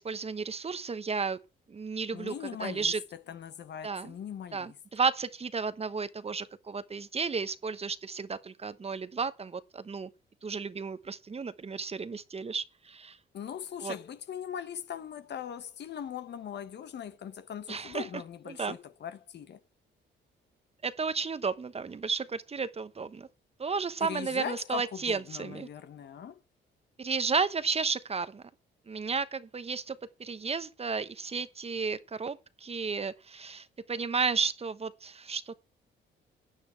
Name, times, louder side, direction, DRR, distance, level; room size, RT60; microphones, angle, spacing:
voice 1, 0.0-1.4 1.7-2.3 2.6-3.0 3.8-4.1 4.5-10.1 10.4-13.2 13.8-13.9 17.7-18.1 18.5-18.7 20.8-23.3 23.6-25.7 27.0-28.4 28.9-35.6, right 5 dB, 30° right, 1.0 m, -33 dB
voice 2, 2.1-4.8 13.3-19.6 24.0-26.4, left 9 dB, 60° left, 1.3 m, -40 dB
16.0 x 9.5 x 4.6 m
cardioid pair, 90°, 20 cm